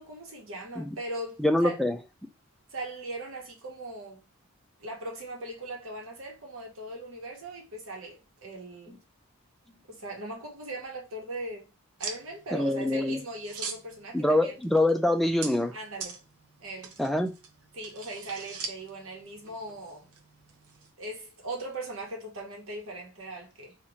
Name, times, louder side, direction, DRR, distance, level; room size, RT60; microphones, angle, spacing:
voice 1, 0.0-1.8 2.7-4.2 4.8-9.0 9.9-11.7 12.0-14.6 15.7-16.2 16.6-16.9 17.7-20.1 21.0-23.8, right 1 dB, 60° right, 1.2 m, -39 dB
voice 2, 1.4-2.0 12.5-13.2 14.1-15.7 17.0-17.3, left 1 dB, ahead, 0.3 m, -25 dB
sound 1, 12.0-20.9, right 5 dB, 80° right, 0.7 m, -43 dB
2.8 x 2.5 x 4.2 m
head